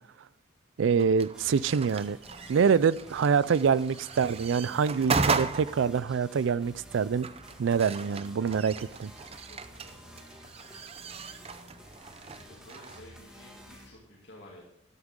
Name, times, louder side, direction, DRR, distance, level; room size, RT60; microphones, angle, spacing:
voice 1, 0.8-2.2 2.5-7.3 7.6-9.1, right 6 dB, 80° right, 20 dB, 0.4 m, -25 dB
sound 1, 1.0-13.0, right 4 dB, 30° right, 0.6 m, -36 dB
sound 2, 1.3-13.9, equal, 5° right, 2.0 m, -51 dB
voice 2, 9.4-10.2 12.2-14.6, left 1 dB, 60° left, -5 dB, 2.7 m, -52 dB
13.0 x 12.0 x 3.7 m, 0.74 s
head